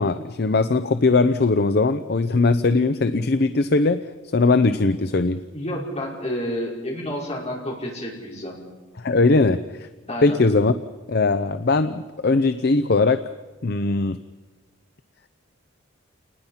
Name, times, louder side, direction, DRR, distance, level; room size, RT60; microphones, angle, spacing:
voice 1, 0.0-4.1 4.3-5.4 9.0-9.9 10.2-10.7 11.1-13.3 13.6-14.2, left 3 dB, 55° left, 11 dB, 0.6 m, -20 dB
voice 2, 5.5-8.5 10.1-10.4, equal, 35° left, -3 dB, 5.5 m, -30 dB
29.0 x 20.0 x 5.7 m, 1.3 s
head